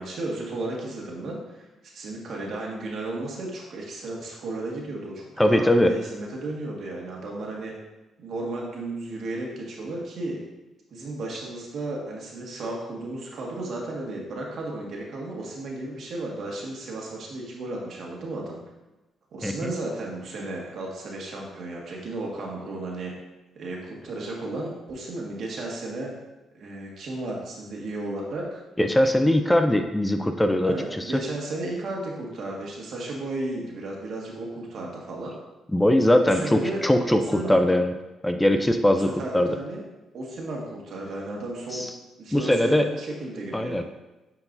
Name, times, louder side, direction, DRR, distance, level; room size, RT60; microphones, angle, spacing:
voice 1, 0.0-1.7 1.9-7.7 8.2-10.4 10.9-18.6 19.3-23.1 23.6-26.1 26.5-28.6 30.7-35.3 35.7-35.8 36.2-36.8 37.1-37.6 38.9-39.8 40.1-41.9 42.2-43.8, right 2 dB, 60° right, -2 dB, 1.7 m, -34 dB
voice 2, 5.4-5.9 19.4-19.5 28.8-31.1 35.7-37.9 38.2-39.1 39.3-39.5 41.7-41.9 42.3-42.9 43.5-43.8, left 1 dB, 10° left, 6 dB, 0.4 m, -21 dB
9.4 x 4.7 x 2.6 m, 1.1 s
cardioid pair, 90°, 0 cm